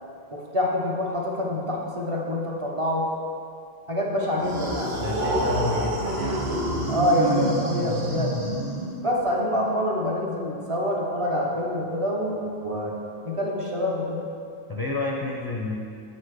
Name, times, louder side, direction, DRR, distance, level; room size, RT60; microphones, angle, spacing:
voice 1, 0.3-3.1 3.9-5.0 6.9-8.4 9.0-12.9 13.2-14.2, left 1 dB, 35° right, -3 dB, 0.9 m, -26 dB
sound 1, 4.4-9.2, right 1 dB, 70° right, 1.1 m, -27 dB
voice 2, 5.0-6.5 14.7-15.7, left 3 dB, 30° left, -2 dB, 0.4 m, -29 dB
7.8 x 4.2 x 4.8 m, 2.4 s
omnidirectional pair, 1.1 m